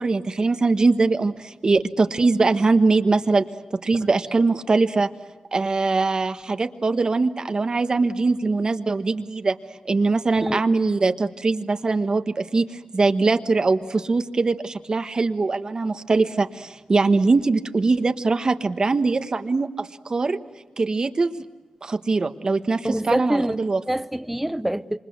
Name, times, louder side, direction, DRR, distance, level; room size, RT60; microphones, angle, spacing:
voice 1, 0.0-3.4 3.7-5.1 5.5-9.6 9.8-20.4 20.8-21.4 21.8-23.8, right 3 dB, 40° right, 1.3 m, -22 dB
voice 2, 22.8-23.6 23.9-25.0, right 1 dB, 5° right, 0.8 m, -25 dB
27.5 x 27.0 x 8.1 m
wide cardioid pair, 150°, 2 cm